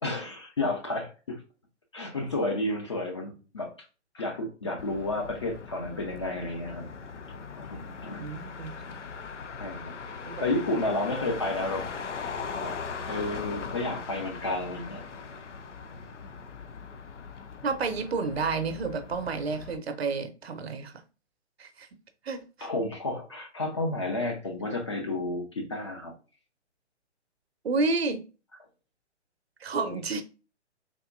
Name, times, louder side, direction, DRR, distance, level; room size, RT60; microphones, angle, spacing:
voice 1, 0.0-1.4 1.9-3.7 4.1-6.8 7.6-8.2 9.6-9.9 10.4-11.9 12.5-12.7 13.1-15.0 22.6-26.1 29.8-30.0, left 2 dB, 25° left, 0.4 m, -31 dB
Motor vehicle (road), 4.8-19.8, left 5 dB, 85° left, 0.5 m, -40 dB
voice 2, 8.2-8.7 10.2-10.3 17.6-21.0 21.6-21.9 22.2-22.7 24.6-24.7 27.6-28.2 29.6-30.2, right 4 dB, 60° right, 0.6 m, -30 dB
3.6 x 2.8 x 2.4 m
figure-of-eight pair, 135°, 35 cm